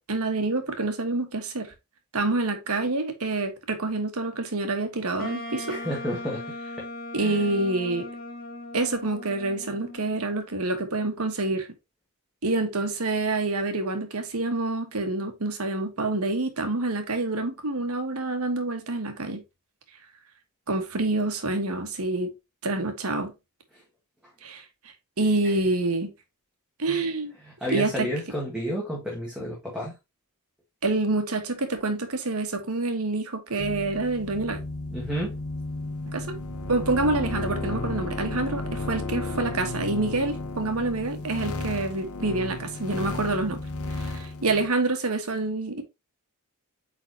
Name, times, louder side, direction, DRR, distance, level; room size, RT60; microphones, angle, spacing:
voice 1, 0.0-1.7 2.1-5.8 7.1-8.1 8.7-11.7 12.4-19.4 20.7-22.3 22.6-23.3 24.4-24.6 25.2-26.1 26.8-27.3 27.7-28.1 30.8-34.6 36.1-36.3 36.7-43.6 43.9-45.8, right 2 dB, 70° right, 1.4 m, -27 dB
Wind instrument woodwind instrument, 5.2-10.2, left 1 dB, 40° left, 1.5 m, -38 dB
voice 2, 5.7-6.9 7.2-7.4 25.4-25.5 26.9-27.1 27.5-29.9 34.9-35.4, equal, 5° right, 1.8 m, -31 dB
sound 1, 33.6-44.7, left 2 dB, 70° left, 1.1 m, -33 dB
8.5 x 4.0 x 2.8 m
head